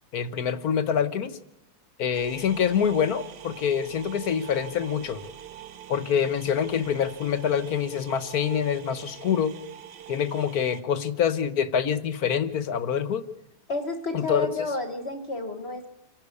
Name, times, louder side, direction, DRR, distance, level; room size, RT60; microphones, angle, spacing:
voice 1, 0.1-1.4 2.0-5.2 5.9-9.6 10.1-13.3 14.1-14.5, left 8 dB, 65° left, 13 dB, 1.6 m, -26 dB
sound 1, 2.1-10.8, right 10 dB, 85° right, 1.5 m, -44 dB
voice 2, 13.7-15.9, left 2 dB, 40° left, 6 dB, 1.7 m, -31 dB
27.0 x 12.0 x 8.4 m, 0.90 s
omnidirectional pair, 1.7 m